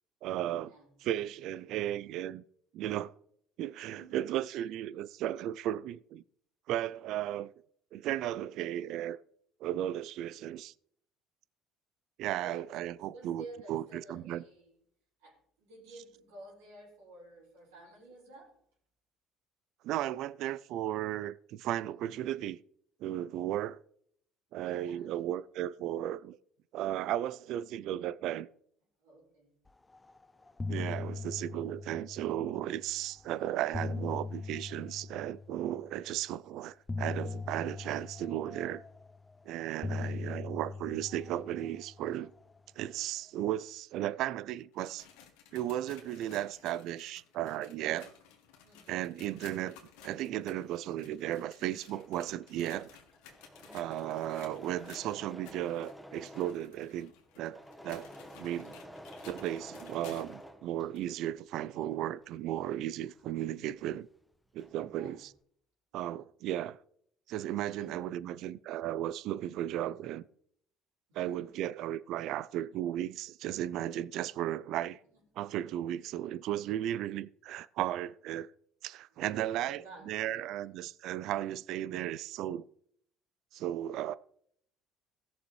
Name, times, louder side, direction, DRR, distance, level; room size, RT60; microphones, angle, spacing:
voice 1, 0.2-0.7 1.0-2.4 2.7-3.1 3.6-6.2 6.7-7.5 7.9-9.2 9.6-10.7 12.2-14.4 19.8-22.6 23.0-23.8 24.5-26.4 26.7-28.5 30.7-38.8 39.5-42.3 42.8-45.1 45.5-48.1 48.9-49.8 50.0-52.9 53.7-57.1 57.4-58.1 58.4-58.8 59.2-64.1 64.5-65.3 65.9-66.8 67.3-70.2 71.1-75.0 75.4-78.5 78.8-82.6 83.5-84.1, right 12 dB, 65° right, 0.4 m, -35 dB
voice 2, 3.8-4.2 12.4-12.6 13.1-14.7 15.2-18.5 24.6-25.3 29.0-29.5 30.3-30.4 39.8-40.2 48.6-49.0 53.6-54.0 64.9-65.2 67.7-68.0 71.1-71.4 79.1-80.5, right 2 dB, 85° right, 4.5 m, -52 dB
sound 1, 29.9-30.2 30.4-32.8 33.4-35.9 36.9-39.3 39.8-42.4, left 3 dB, 20° left, 0.5 m, -40 dB
sound 2, 44.6-60.5 60.9-61.1 61.8-61.9 62.8-62.9, left 8 dB, 75° left, 1.7 m, -57 dB
Engine / Mechanisms, 51.8-61.3 61.6-64.0 64.2-64.9, equal, ahead, 1.1 m, -51 dB
16.5 x 6.9 x 3.2 m
hypercardioid pair, 65°, 0 cm